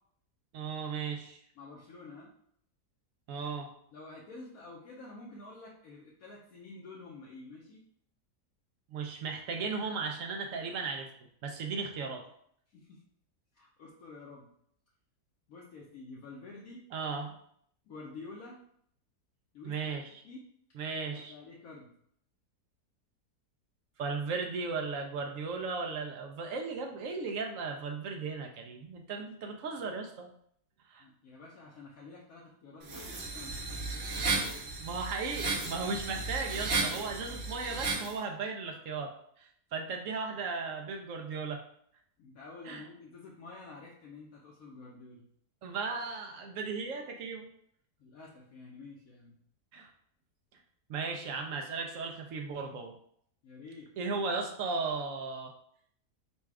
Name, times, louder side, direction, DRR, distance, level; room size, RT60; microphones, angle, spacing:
voice 1, 0.5-1.4 3.3-3.7 8.9-11.1 11.4-12.3 16.9-17.3 19.6-20.2 20.7-21.3 24.0-30.3 30.9-31.0 34.8-41.6 42.6-42.8 45.6-47.5 49.7-49.9 50.9-52.9 54.0-55.5, right 4 dB, 70° right, 3 dB, 0.8 m, -36 dB
voice 2, 1.6-2.3 3.9-7.8 12.7-13.0 13.5-14.5 15.5-16.8 17.9-18.6 19.5-19.9 20.2-20.5 21.1-21.9 31.0-34.1 42.2-45.3 48.0-49.4 53.4-53.9, left 3 dB, 70° left, -4 dB, 1.1 m, -49 dB
sound 1, 32.8-38.1, right 3 dB, 50° right, 1.2 m, -34 dB
4.1 x 2.3 x 4.6 m, 0.66 s
omnidirectional pair, 1.7 m